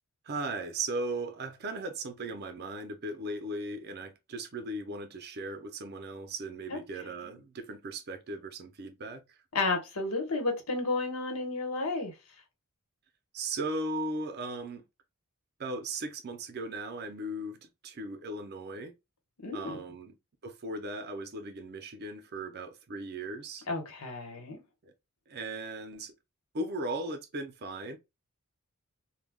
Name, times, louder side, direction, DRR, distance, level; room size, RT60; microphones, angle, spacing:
voice 1, 0.3-9.2 13.3-14.8 15.6-17.6 17.8-18.9 19.5-20.1 20.4-23.6 24.8-24.9 25.3-26.1 26.5-28.0, right 2 dB, 45° right, 0.5 m, -37 dB
voice 2, 9.5-12.1 19.4-19.8 23.7-24.6, left 3 dB, 75° left, 1.0 m, -32 dB
2.2 x 2.2 x 3.3 m
head